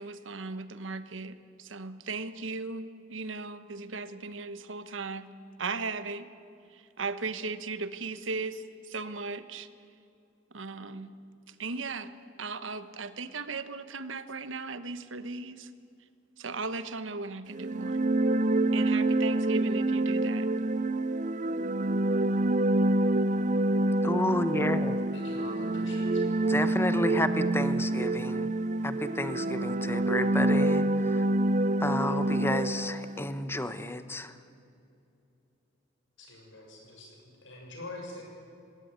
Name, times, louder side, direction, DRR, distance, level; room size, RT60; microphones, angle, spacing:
voice 1, 0.0-5.3 5.6-6.3 6.7-9.7 10.5-11.2 11.5-12.1 12.4-15.7 16.4-18.0 18.7-20.5, right 4 dB, 90° right, 13 dB, 1.2 m, -37 dB
sound 1, 17.5-33.3, right 2 dB, 40° right, 0.6 m, -27 dB
voice 2, 24.0-25.0 26.5-28.5 28.8-30.8 31.2-31.3 31.8-34.3, left 1 dB, 15° left, 11 dB, 1.0 m, -31 dB
voice 3, 25.1-26.4 36.2-38.2, left 2 dB, 85° left, 0 dB, 6.9 m, -45 dB
20.0 x 17.0 x 9.6 m, 2.6 s
head